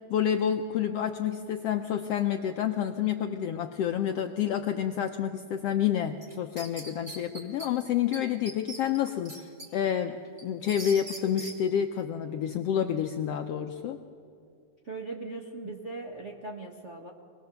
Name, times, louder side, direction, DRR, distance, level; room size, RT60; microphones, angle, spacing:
voice 1, 0.0-10.2 10.4-14.0, left 9 dB, 75° left, 7 dB, 1.4 m, -29 dB
sound 1, 6.2-7.7 8.1-8.2 8.5-9.7 10.1-11.5, right 1 dB, 15° right, 2.1 m, -41 dB
voice 2, 14.8-17.1, right 3 dB, 45° right, -1 dB, 0.9 m, -39 dB
25.5 x 20.0 x 6.9 m, 2.4 s
omnidirectional pair, 3.5 m